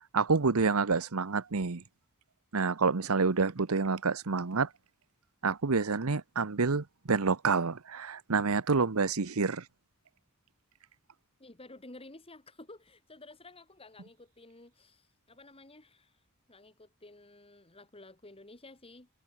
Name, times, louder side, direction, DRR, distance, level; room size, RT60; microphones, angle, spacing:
voice 1, 0.1-1.8 2.5-4.7 5.4-9.6, right 4 dB, 90° right, 1.0 m, -28 dB
voice 2, 11.4-16.2 16.5-19.1, left 2 dB, 25° left, 3.1 m, -52 dB
head